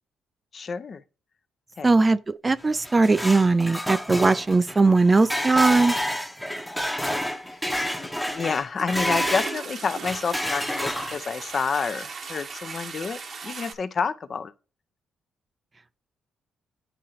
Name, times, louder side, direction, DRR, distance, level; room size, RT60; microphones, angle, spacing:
voice 1, 0.5-1.0 1.8-1.9 7.4-14.5, left 5 dB, 45° left, 0.6 m, -29 dB
voice 2, 1.8-5.9, right 3 dB, 25° right, 0.4 m, -19 dB
sound 1, 2.6-9.6 10.0-11.4, equal, ahead, 0.8 m, -29 dB
Toilet flush, 8.3-8.5 8.7-13.7, right 5 dB, 50° right, 0.9 m, -37 dB
10.0 x 3.8 x 2.8 m
cardioid pair, 90°, 0 cm